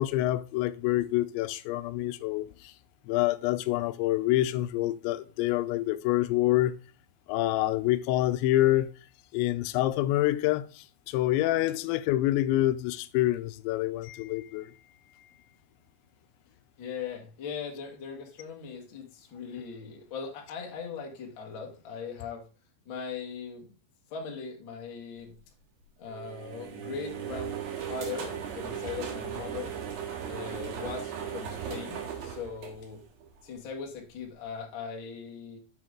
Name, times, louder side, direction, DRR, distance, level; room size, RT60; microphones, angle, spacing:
voice 1, 0.0-2.7 3.1-6.8 7.3-8.9 9.3-14.7, left 15 dB, 85° left, 2.8 m, -27 dB
voice 2, 16.8-22.4 22.8-23.7 24.1-25.4 26.0-29.7 30.2-33.0 33.4-35.6, left 6 dB, 70° left, 1.1 m, -39 dB
sound 1, 26.1-33.4, right 8 dB, 70° right, 3.4 m, -37 dB
7.5 x 6.1 x 3.7 m
omnidirectional pair, 5.1 m